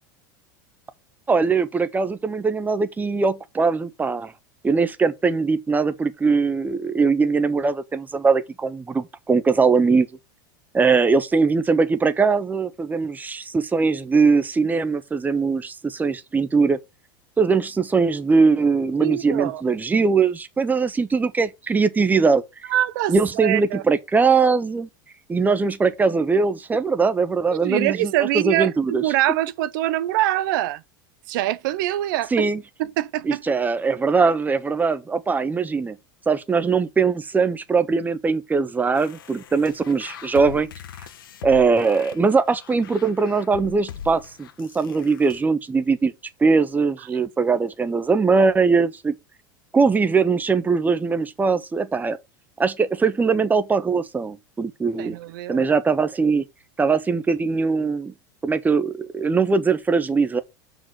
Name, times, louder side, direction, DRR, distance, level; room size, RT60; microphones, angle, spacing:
voice 1, 1.3-4.3 4.6-10.1 10.7-16.8 17.4-22.4 23.1-24.9 25.3-29.0 32.3-32.6 33.2-36.0 36.3-40.7 41.4-46.1 46.4-49.1 49.7-52.2 52.6-55.2 55.5-56.4 56.8-58.1 58.4-60.4, right 4 dB, 15° right, 1.1 m, -21 dB
voice 2, 19.0-19.6 22.7-23.8 27.5-30.8 31.3-32.3 32.8-33.4 55.0-55.7, right 14 dB, 70° right, 0.7 m, -24 dB
sound 1, 39.0-45.4, left 8 dB, 85° left, 1.4 m, -41 dB
6.0 x 5.1 x 6.0 m
supercardioid pair, 110°, 11 cm